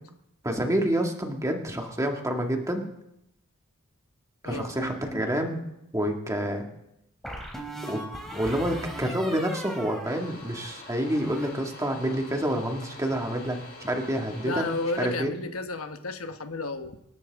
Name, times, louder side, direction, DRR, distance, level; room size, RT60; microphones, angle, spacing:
voice 1, 0.4-2.9 4.4-5.6 5.9-6.7 7.9-8.0 8.3-14.6 15.0-15.3, right 1 dB, 15° right, 2 dB, 2.0 m, -28 dB
sound 1, 4.5-5.4 7.2-10.7 11.0-11.5, right 1 dB, ahead, 3.2 m, -39 dB
sound 2, 10.0-15.2, left 3 dB, 55° left, 5.7 m, -46 dB
voice 2, 14.4-17.0, left 3 dB, 75° left, 7 dB, 1.2 m, -32 dB
27.0 x 12.0 x 3.6 m, 0.84 s
head